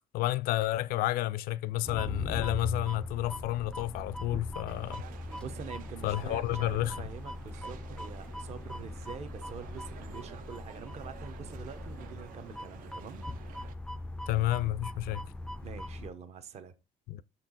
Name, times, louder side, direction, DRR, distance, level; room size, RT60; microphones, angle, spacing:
voice 1, 0.1-5.0 6.0-7.1 14.3-15.3 17.1-17.2, left 15 dB, 80° left, 0.4 m, -31 dB
sound 1, 1.8-16.1, left 1 dB, 5° left, 0.3 m, -40 dB
sound 2, 4.7-13.8, right 11 dB, 65° right, 0.4 m, -52 dB
voice 2, 5.3-13.2 15.6-16.7, right 7 dB, 45° right, 0.8 m, -45 dB
6.4 x 4.4 x 3.8 m
cardioid pair, 155°, 15 cm